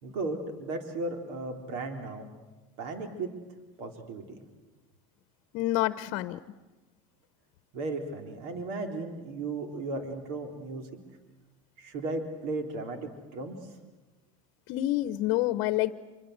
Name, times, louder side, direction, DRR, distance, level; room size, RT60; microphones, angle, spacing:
voice 1, 0.0-2.3 2.8-3.3 3.8-4.4 7.7-10.9 11.8-13.6, right 3 dB, 65° right, 5 dB, 3.7 m, -35 dB
voice 2, 5.5-6.4 14.7-15.9, left 16 dB, 60° left, 13 dB, 1.0 m, -27 dB
26.5 x 24.5 x 8.1 m, 1.2 s
supercardioid pair, 115°, 16 cm